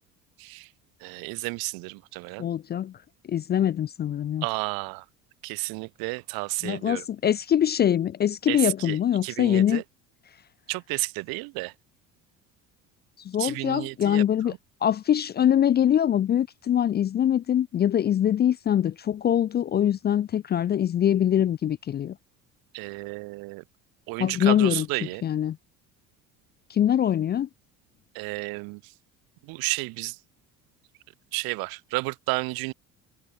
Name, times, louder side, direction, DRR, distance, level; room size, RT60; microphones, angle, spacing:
voice 1, 0.4-0.7 1.0-2.4 4.4-5.0 5.4-7.0 8.5-9.8 10.7-11.7 13.4-14.6 22.7-23.6 24.1-25.2 28.1-28.8 29.4-30.2 31.3-32.7, right 27 dB, 60° right, 0.5 m, -32 dB
voice 2, 2.4-2.9 3.3-4.4 6.6-9.8 13.3-14.5 14.8-22.1 24.2-24.9 25.2-25.6 26.7-27.5, left 10 dB, 25° left, 0.3 m, -23 dB
hypercardioid pair, 60°, 40 cm